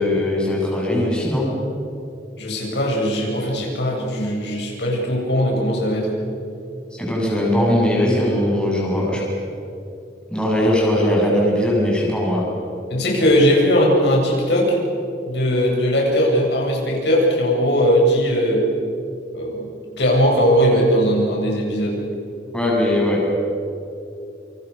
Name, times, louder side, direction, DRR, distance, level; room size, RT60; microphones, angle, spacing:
voice 1, 0.0-1.5 6.9-9.2 10.3-12.5 22.5-23.3, left 1 dB, 5° left, -4 dB, 7.3 m, -19 dB
voice 2, 2.4-6.1 12.9-14.8 15.3-18.6 19.3-19.7 20.0-22.0, equal, 75° left, -1 dB, 8.0 m, -19 dB
29.0 x 28.5 x 6.8 m, 2.6 s
head